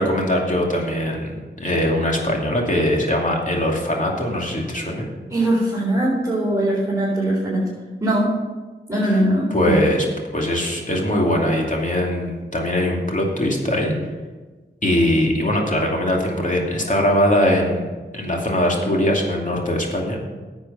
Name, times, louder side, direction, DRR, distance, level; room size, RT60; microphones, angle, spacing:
voice 1, 0.0-5.1 9.5-10.1 10.3-13.9 14.8-17.9 18.1-20.2, left 1 dB, 40° left, 0 dB, 2.6 m, -21 dB
voice 2, 5.3-7.6 8.0-8.3 8.9-9.7, right 1 dB, 15° right, -8 dB, 4.1 m, -20 dB
10.5 x 8.0 x 5.6 m, 1.3 s
cardioid pair, 50°, 20 cm